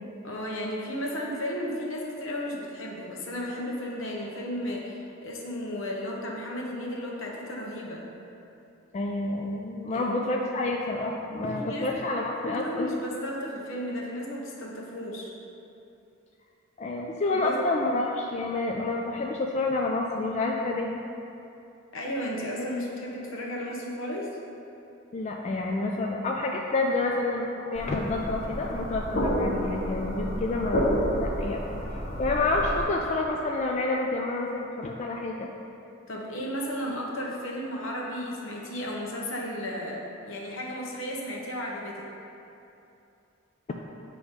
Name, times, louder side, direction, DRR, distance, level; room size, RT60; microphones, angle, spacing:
voice 1, 0.2-8.0 9.9-10.1 11.5-11.9 12.5-15.3 17.3-17.6 21.9-24.4 36.1-42.1, equal, 75° left, -2 dB, 1.0 m, -34 dB
voice 2, 8.9-12.9 16.8-21.0 25.1-35.5, left 2 dB, 35° left, 0 dB, 0.3 m, -29 dB
sound 1, 27.7-32.8, equal, 50° left, 1.4 m, -30 dB
7.9 x 3.0 x 5.1 m, 2.8 s
head